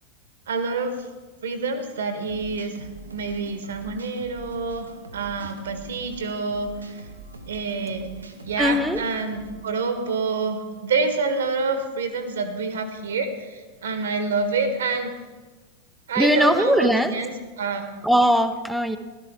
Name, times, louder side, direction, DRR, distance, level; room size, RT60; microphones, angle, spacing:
voice 1, 0.5-1.1 1.4-7.1 7.5-8.1 8.4-15.1 16.1-17.8, right 4 dB, 65° right, 8 dB, 1.5 m, -27 dB
sound 1, 2.2-9.5, right 2 dB, 80° right, 1.1 m, -43 dB
voice 2, 8.6-9.0 16.2-17.1 18.0-19.0, equal, ahead, 9 dB, 0.8 m, -20 dB
15.5 x 12.5 x 3.7 m, 1.3 s
figure-of-eight pair, 90°, 0 cm